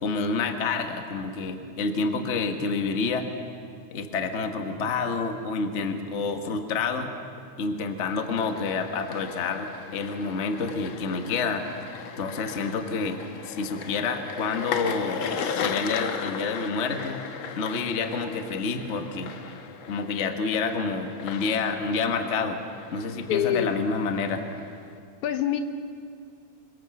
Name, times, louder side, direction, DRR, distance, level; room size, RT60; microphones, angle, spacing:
voice 1, 0.0-3.3 3.9-7.1 7.6-11.7 12.2-15.2 15.5-17.2 17.5-19.3 19.9-22.6 22.9-24.4, left 4 dB, 35° left, 6 dB, 1.2 m, -28 dB
sound 1, 8.0-25.0, left 6 dB, 55° left, 1.5 m, -37 dB
voice 2, 23.3-23.7 25.2-25.6, left 11 dB, 80° left, 8 dB, 2.5 m, -25 dB
26.0 x 24.0 x 7.2 m, 2.3 s
omnidirectional pair, 3.4 m